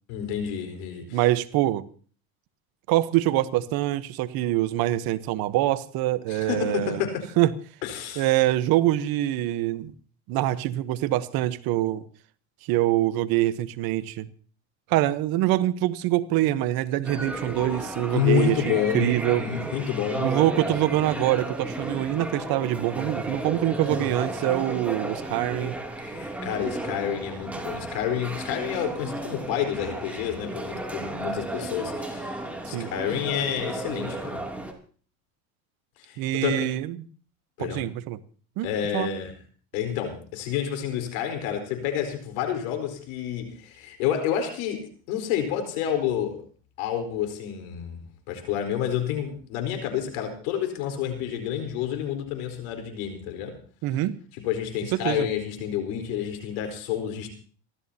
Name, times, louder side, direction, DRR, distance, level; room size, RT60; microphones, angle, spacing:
voice 1, 0.1-1.2 6.3-7.2 7.8-8.3 18.1-19.1 19.4-20.3 26.0-34.4 36.0-36.6 37.6-37.8 38.6-39.3 39.7-46.4 46.8-53.6 54.3-57.3, left 9 dB, 75° left, 4.5 m, -29 dB
voice 2, 1.1-1.8 2.9-7.0 7.4-7.5 8.2-9.9 10.3-12.0 12.7-14.3 14.9-19.4 20.2-25.7 32.7-32.9 36.2-36.9 37.6-38.2 38.6-39.1 53.8-54.2 54.9-55.3, right 14 dB, 55° right, 1.2 m, -24 dB
sound 1, 17.0-34.7, right 1 dB, 5° right, 2.8 m, -34 dB
28.5 x 13.0 x 2.9 m
supercardioid pair, 110°, 42 cm